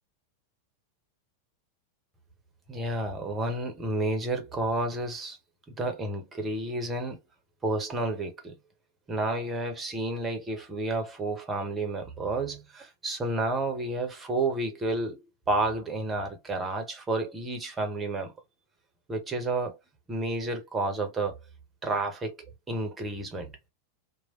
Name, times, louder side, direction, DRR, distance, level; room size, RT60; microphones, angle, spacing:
voice 1, 2.7-5.4 5.7-7.2 7.6-8.5 9.1-15.2 15.5-18.3 19.1-19.8 20.1-21.4 21.8-22.3 22.7-23.5, right 2 dB, 20° right, 1.0 m, -30 dB
3.1 x 2.3 x 2.6 m
figure-of-eight pair, 90°, 0 cm